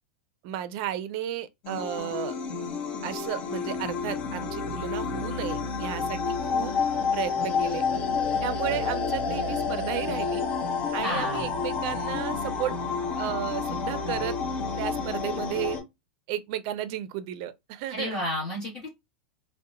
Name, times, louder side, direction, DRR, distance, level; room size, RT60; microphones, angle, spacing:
voice 1, 0.4-2.3 3.0-6.7 7.1-7.8 8.4-10.4 10.9-12.8 13.2-14.4 14.8-15.8 16.3-18.2, right 11 dB, 55° right, 0.4 m, -33 dB
sound 1, 1.6-15.8, left 5 dB, 50° left, 1.0 m, -29 dB
voice 2, 11.0-11.5 17.9-18.9, left 1 dB, 20° left, 1.3 m, -31 dB
2.7 x 2.1 x 2.4 m
supercardioid pair, 140°, 4 cm